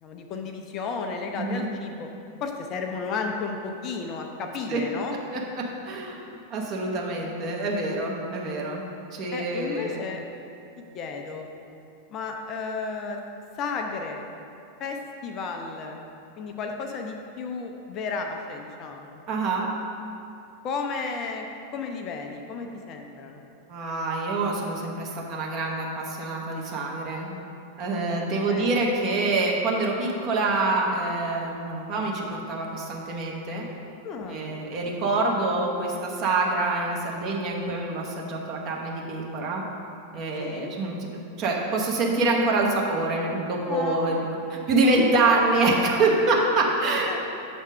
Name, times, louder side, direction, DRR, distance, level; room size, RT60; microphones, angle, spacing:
voice 1, 0.0-2.1 2.4-5.2 9.3-10.2 10.8-11.5 12.1-13.2 13.6-14.2 14.8-16.0 16.4-19.2 20.6-21.5 21.7-23.4 28.5-28.7 34.0-34.5 40.4-40.7 43.6-44.0 47.1-47.2, left 4 dB, 35° left, 3 dB, 0.5 m, -33 dB
voice 2, 5.3-6.2 6.5-8.8 9.1-10.0 19.3-19.7 23.7-27.3 27.8-33.6 34.3-39.6 40.1-41.0 41.4-47.2, right 2 dB, 35° right, -1 dB, 1.0 m, -26 dB
7.3 x 3.5 x 5.4 m, 2.7 s
figure-of-eight pair, 90°, 0 cm